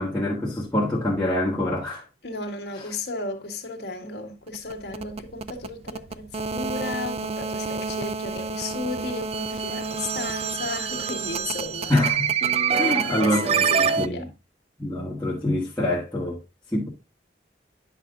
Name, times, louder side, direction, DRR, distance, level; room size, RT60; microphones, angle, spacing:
voice 1, 0.0-2.0 11.9-12.3 12.8-13.4 13.8-14.3 14.8-16.4 16.7-16.9, left 1 dB, 10° left, 1.6 m, -25 dB
voice 2, 2.2-11.9 12.7-14.3, left 3 dB, 65° left, 1.8 m, -34 dB
sound 1, 4.5-14.1, right 6 dB, 35° right, 0.3 m, -27 dB
10.0 x 5.8 x 2.5 m
head